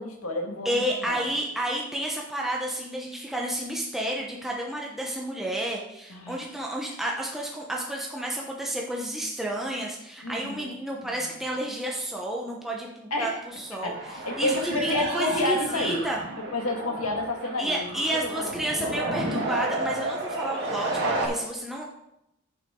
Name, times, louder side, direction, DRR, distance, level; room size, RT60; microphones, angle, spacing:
voice 1, 0.0-1.2 6.1-6.4 10.2-10.7 11.0-11.1 13.1-13.4 13.8-16.0 16.5-18.4 18.8-19.0, left 2 dB, 75° left, 2 dB, 1.8 m, -30 dB
voice 2, 0.6-16.2 17.6-21.8, right 1 dB, ahead, -2 dB, 0.9 m, -31 dB
sound 1, 13.7-21.3, right 2 dB, 50° right, 2.3 m, -32 dB
10.0 x 7.1 x 3.7 m, 0.84 s
head